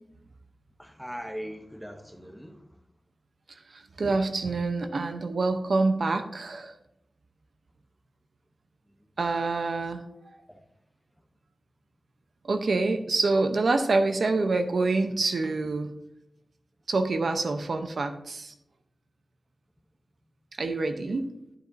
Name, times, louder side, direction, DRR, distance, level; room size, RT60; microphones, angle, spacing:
voice 1, 0.8-2.7 10.5-10.6 21.1-21.2, equal, ahead, 0.8 m, -40 dB
voice 2, 3.7-6.7 9.2-10.0 12.5-15.9 16.9-18.5 20.6-21.3, right 3 dB, 70° right, 0.7 m, -26 dB
12.0 x 7.4 x 2.7 m
wide cardioid pair, 80°, 0 cm